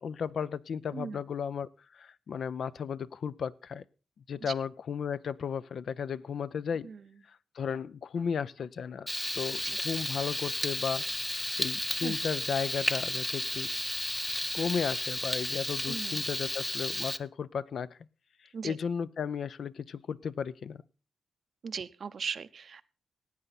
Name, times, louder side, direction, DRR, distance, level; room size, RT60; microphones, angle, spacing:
voice 1, 0.0-3.8 4.3-6.9 7.3-9.1 9.3-13.7 14.5-18.0 18.4-20.8, left 7 dB, 55° left, 17 dB, 0.5 m, -35 dB
Frying (food), 9.1-17.2, left 1 dB, 5° left, 0.5 m, -33 dB
voice 2, 15.9-16.2 18.5-18.8 21.6-22.8, right 6 dB, 45° right, 15 dB, 0.6 m, -38 dB
16.5 x 9.0 x 4.1 m, 0.33 s
wide cardioid pair, 155°, 0 cm